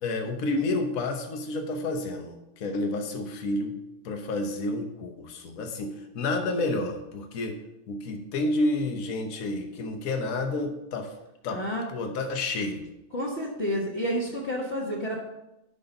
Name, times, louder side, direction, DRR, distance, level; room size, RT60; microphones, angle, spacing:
voice 1, 0.0-3.7 4.0-7.6 7.9-11.1 11.4-11.6 11.9-12.9, left 2 dB, 60° left, 4 dB, 1.4 m, -30 dB
voice 2, 11.5-11.9 13.1-15.2, equal, 45° left, -6 dB, 1.5 m, -30 dB
10.5 x 3.9 x 5.3 m, 0.89 s
omnidirectional pair, 1.7 m